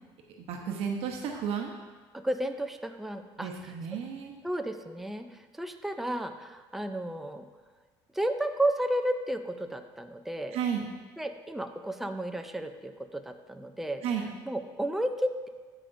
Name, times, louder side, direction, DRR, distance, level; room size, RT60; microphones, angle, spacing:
voice 1, 0.4-1.7 3.4-4.3 10.5-10.8 14.0-14.3, right 7 dB, 65° right, 2 dB, 0.9 m, -32 dB
voice 2, 2.1-3.5 4.4-7.5 8.1-10.6 11.2-14.0 14.5-15.5, right 1 dB, ahead, 6 dB, 0.5 m, -32 dB
13.5 x 5.0 x 2.6 m, 1.4 s
supercardioid pair, 95°, 11 cm